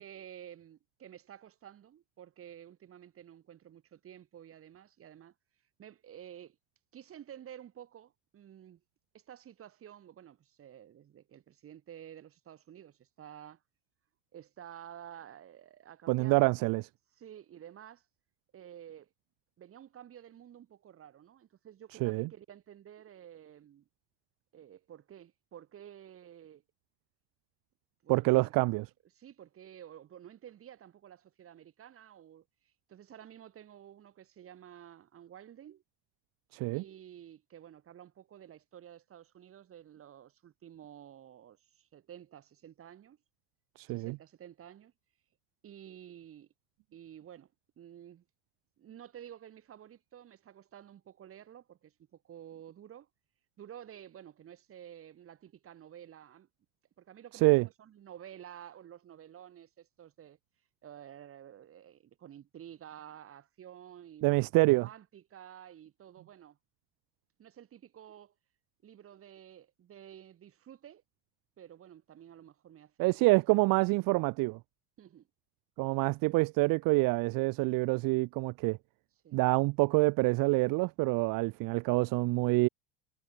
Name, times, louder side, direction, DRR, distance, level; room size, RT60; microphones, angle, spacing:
voice 1, 0.0-5.3 5.8-6.6 6.9-8.8 9.1-13.6 14.3-16.5 17.2-18.1 18.5-19.1 19.6-23.9 24.5-26.6 28.0-28.5 29.2-35.8 36.7-43.2 43.9-44.9 45.6-46.5 46.9-48.2 48.8-53.1 53.6-56.5 57.0-60.4 60.8-66.6 67.4-68.3 68.8-71.0 71.6-73.3 75.0-75.3 79.2-79.4, right 10 dB, 35° right, 7.4 m, -51 dB
voice 2, 16.1-16.8 22.0-22.3 28.1-28.8 36.5-36.8 43.8-44.2 57.4-57.7 64.2-64.9 73.0-74.6 75.8-78.8 79.3-82.7, right 24 dB, 60° right, 1.0 m, -26 dB
cardioid pair, 155°, 39 cm